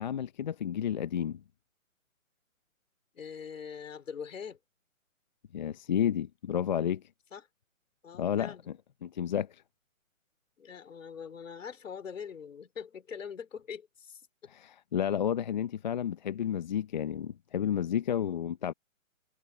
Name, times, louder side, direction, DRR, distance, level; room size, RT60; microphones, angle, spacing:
voice 1, 0.0-1.4 5.5-7.0 8.2-8.8 9.0-9.6 14.5-18.7, left 9 dB, 35° left, 0.7 m, -31 dB
voice 2, 3.1-4.6 7.3-7.4 8.0-8.7 10.6-14.2 18.2-18.4, left 7 dB, 65° left, 3.8 m, -43 dB
hypercardioid pair, 155°, 41 cm